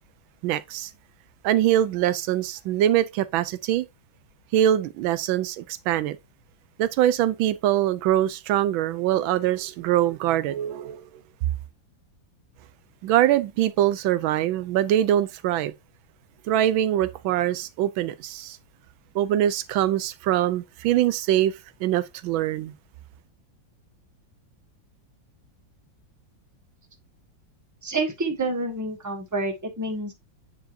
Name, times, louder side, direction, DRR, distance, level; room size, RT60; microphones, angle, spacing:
voice 1, 0.4-0.9 1.4-3.8 4.5-6.2 6.8-11.0 13.0-15.7 16.5-18.6 19.1-22.7, right 12 dB, 80° right, 1.3 m, -23 dB
voice 2, 27.8-30.1, right 2 dB, 10° right, 1.3 m, -28 dB
9.1 x 4.7 x 2.6 m
omnidirectional pair, 2.1 m